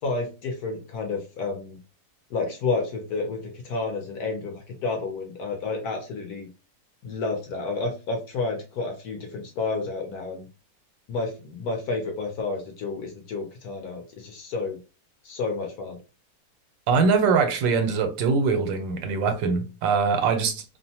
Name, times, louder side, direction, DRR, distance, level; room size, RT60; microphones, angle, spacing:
voice 1, 0.0-1.8 2.3-6.5 7.0-10.5 11.1-14.8 15.2-16.0, left 3 dB, 70° left, 1.0 m, -30 dB
voice 2, 16.9-20.6, right 5 dB, 85° right, 1.3 m, -22 dB
2.9 x 2.1 x 2.7 m
omnidirectional pair, 2.0 m